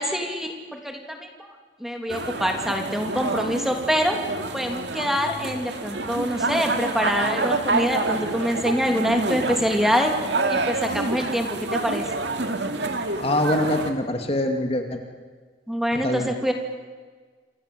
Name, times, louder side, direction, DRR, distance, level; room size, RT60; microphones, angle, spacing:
voice 1, 0.0-1.5 1.8-4.2 4.5-10.1 10.5-12.0 15.7-16.5, equal, ahead, 3 dB, 2.9 m, -25 dB
sound 1, 2.1-13.9, right 3 dB, 70° right, 2.5 m, -28 dB
voice 2, 13.2-15.0 16.0-16.3, left 1 dB, 35° left, 4 dB, 2.4 m, -24 dB
28.5 x 26.0 x 7.9 m, 1.5 s
head